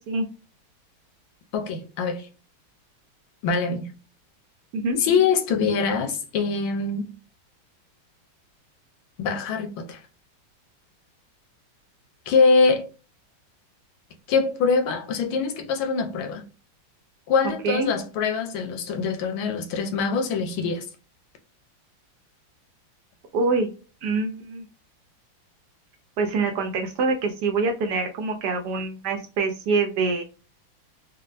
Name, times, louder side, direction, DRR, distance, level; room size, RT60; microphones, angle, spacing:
voice 1, 1.5-2.3 3.4-3.9 5.0-7.1 9.2-10.0 12.3-12.9 14.3-16.4 17.3-20.8, left 5 dB, 90° left, 1.5 m, -23 dB
voice 2, 23.3-23.7 24.0-24.6 26.2-30.2, right 3 dB, 70° right, 1.1 m, -25 dB
4.1 x 2.2 x 2.6 m
omnidirectional pair, 2.2 m